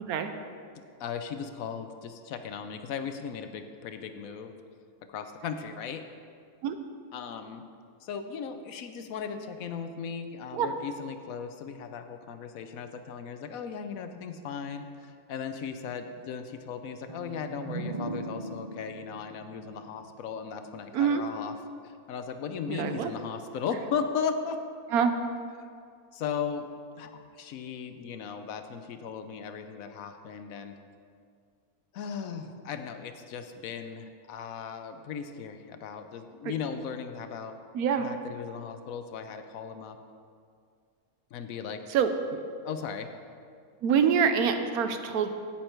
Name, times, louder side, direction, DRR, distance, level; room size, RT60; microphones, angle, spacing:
voice 1, 1.0-4.5 5.1-6.0 7.1-7.6 8.0-21.5 21.8-24.6 25.6-25.7 26.1-26.7 27.0-30.8 31.9-37.6 38.0-40.0 41.3-42.0 42.6-43.1, left 6 dB, 70° left, 8 dB, 1.0 m, -37 dB
sound 1, 17.1-20.8, right 2 dB, 55° right, 0.3 m, -40 dB
voice 2, 22.7-23.1 24.9-25.1 37.7-38.1 41.9-42.1 43.8-45.3, right 7 dB, 80° right, 8 dB, 1.2 m, -25 dB
9.5 x 8.9 x 4.5 m, 2.2 s
omnidirectional pair, 1.5 m